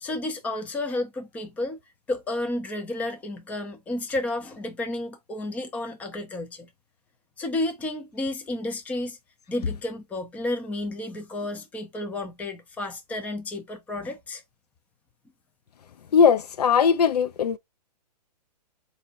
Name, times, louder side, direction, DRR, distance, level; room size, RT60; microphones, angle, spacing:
voice 1, 0.0-1.8 2.1-6.7 7.4-9.2 9.5-14.4, left 2 dB, 5° left, 0.5 m, -31 dB
voice 2, 16.1-17.6, left 6 dB, 70° left, 0.5 m, -19 dB
4.1 x 2.7 x 2.9 m
hypercardioid pair, 130°, 21 cm